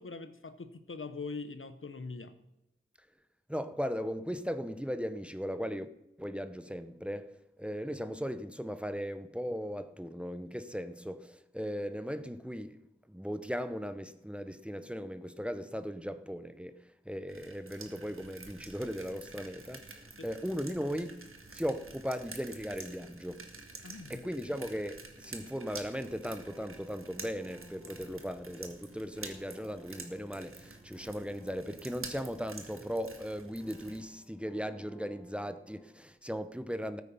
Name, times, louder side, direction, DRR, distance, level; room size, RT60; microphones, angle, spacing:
voice 1, 0.0-2.3 20.2-20.3 23.8-24.2, left 4 dB, 80° left, 1.0 m, -42 dB
voice 2, 3.5-5.9 6.2-12.8 13.1-23.5 24.1-37.0, equal, 5° right, 0.8 m, -38 dB
sound 1, 17.3-34.1, right 3 dB, 90° right, 1.6 m, -49 dB
sound 2, 25.2-36.2, equal, 15° left, 1.2 m, -59 dB
14.0 x 8.9 x 5.6 m
wide cardioid pair, 55°, 21 cm